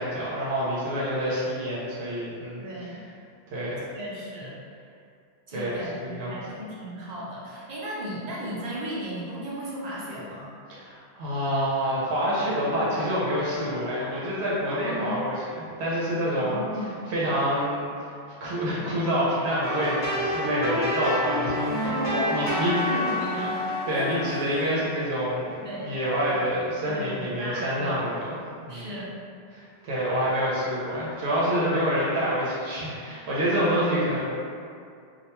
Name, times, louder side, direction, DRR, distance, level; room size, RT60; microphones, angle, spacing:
voice 1, 0.0-3.0 3.5-3.8 5.5-6.4 10.7-16.6 17.1-18.1 18.4-22.0 22.3-22.7 23.9-28.4 28.6-28.9 29.5-34.2, equal, 85° right, -7 dB, 0.9 m, -27 dB
voice 2, 2.5-3.0 3.9-4.5 5.5-10.5 14.7-15.2 16.4-17.1 21.8-24.2 25.6-25.9 26.4-26.5 26.8-27.9 28.7-29.1 31.6-31.8, equal, 45° right, -7 dB, 0.6 m, -35 dB
sound 1, 19.6-25.5, left 1 dB, 50° left, 1.0 m, -29 dB
2.4 x 2.1 x 2.9 m, 2.4 s
omnidirectional pair, 1.1 m